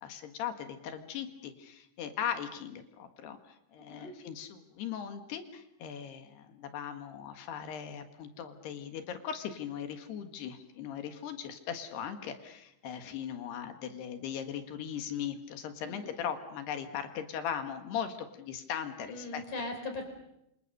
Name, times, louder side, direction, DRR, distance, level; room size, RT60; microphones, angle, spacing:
voice 1, 0.0-19.4, left 8 dB, 70° left, 7 dB, 3.6 m, -39 dB
voice 2, 19.1-20.0, left 2 dB, 45° left, 5 dB, 6.2 m, -39 dB
27.0 x 27.0 x 6.8 m, 0.83 s
omnidirectional pair, 5.2 m